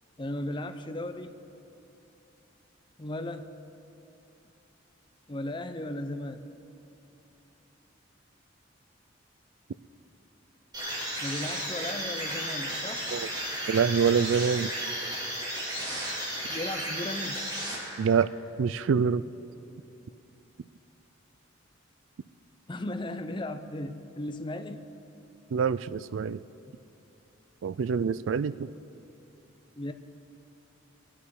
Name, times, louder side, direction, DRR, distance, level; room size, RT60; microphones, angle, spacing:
voice 1, 0.2-1.3 3.0-3.5 5.3-6.4 11.2-13.0 16.5-17.4 22.7-24.9 29.8-29.9, left 1 dB, 25° left, 8 dB, 0.6 m, -36 dB
sound 1, 10.7-18.2, right 1 dB, 20° right, 2.4 m, -34 dB
voice 2, 13.7-14.7 18.0-18.3 18.6-19.2 25.5-26.4 27.6-28.7, right 6 dB, 75° right, 17 dB, 0.4 m, -25 dB
22.5 x 9.9 x 4.8 m, 2.9 s
head